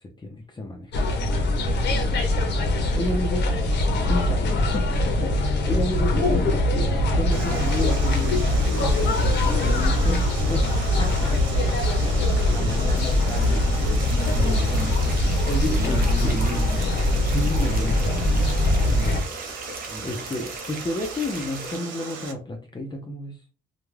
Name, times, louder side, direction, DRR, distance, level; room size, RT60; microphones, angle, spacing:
voice 1, 0.2-1.1 1.6-2.2 2.8-3.4 3.9-14.4 15.5-16.4 17.2-19.2 20.0-23.4, left 1 dB, 20° left, 2 dB, 0.6 m, -32 dB
sound 1, 0.9-19.2, left 1 dB, 60° left, 0.8 m, -22 dB
Water, 7.3-22.3, right 5 dB, 80° right, 0.8 m, -38 dB
voice 2, 12.4-12.8 13.4-13.7 14.3-15.4 15.8-16.9 19.9-20.2, right 1 dB, 15° right, 1 dB, 1.0 m, -34 dB
sound 2, 12.9-21.8, right 3 dB, 50° right, 0.6 m, -39 dB
2.4 x 2.2 x 3.2 m, 0.34 s
cardioid pair, 90°, 20 cm